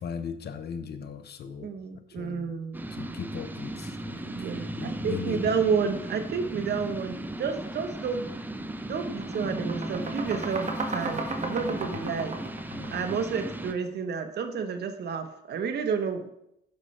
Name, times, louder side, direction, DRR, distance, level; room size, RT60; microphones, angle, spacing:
voice 1, 0.0-1.7 2.1-2.5 2.9-4.3 4.7-5.5 11.6-12.0 12.7-13.1, left 7 dB, 55° left, 10 dB, 0.9 m, -38 dB
voice 2, 1.6-2.8 4.3-8.3 8.9-12.3 12.9-16.3, right 6 dB, 55° right, 6 dB, 1.0 m, -30 dB
sound 1, 2.7-13.7, right 1 dB, 10° right, 0.6 m, -36 dB
sound 2, 8.2-8.4 8.8-13.7, right 2 dB, 40° right, 1.6 m, -35 dB
11.5 x 5.3 x 3.2 m, 0.79 s
cardioid pair, 90°, 20 cm